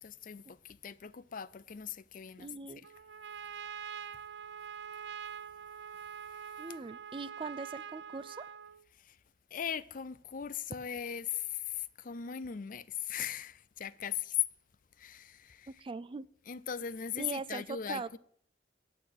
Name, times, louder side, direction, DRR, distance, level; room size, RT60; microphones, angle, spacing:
voice 1, 0.0-2.5 9.0-9.2 9.5-14.4 15.0-15.7 16.5-18.2, left 9 dB, 50° left, 0.5 m, -38 dB
voice 2, 2.4-2.8 6.6-8.5 15.8-16.3 17.2-18.2, right 4 dB, 30° right, 0.4 m, -41 dB
Trumpet, 2.8-8.8, right 8 dB, 80° right, 0.6 m, -45 dB
9.5 x 8.5 x 8.7 m
head